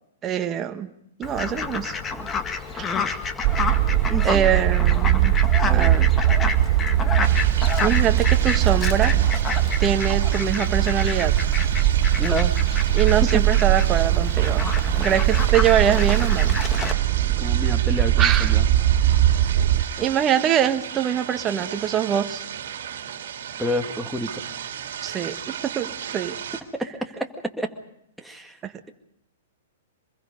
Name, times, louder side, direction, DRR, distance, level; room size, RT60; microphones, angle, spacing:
voice 1, 0.2-0.9 1.2-2.3 2.7-2.9 4.2-5.3 5.7-6.1 7.8-9.2 9.8-11.4 12.9-14.7 15.0-16.6 18.2-18.5 20.0-22.4 25.0-26.4 28.6-28.7, right 9 dB, 25° right, 6 dB, 1.5 m, -24 dB
Fowl, 1.2-16.9, left 5 dB, 20° left, 1.9 m, -30 dB
sound 1, 3.4-19.8, right 13 dB, 45° right, 1.0 m, -20 dB
voice 2, 4.1-4.5 5.6-6.1 12.2-12.5 13.2-13.4 17.4-18.7 23.6-24.4 26.7-27.3 27.6-27.7 28.2-28.6, equal, ahead, 2 dB, 2.1 m, -29 dB
sound 2, 7.2-26.6, right 9 dB, 65° right, 2.3 m, -35 dB
25.5 x 21.5 x 5.4 m, 0.79 s
hypercardioid pair, 120°, 0 cm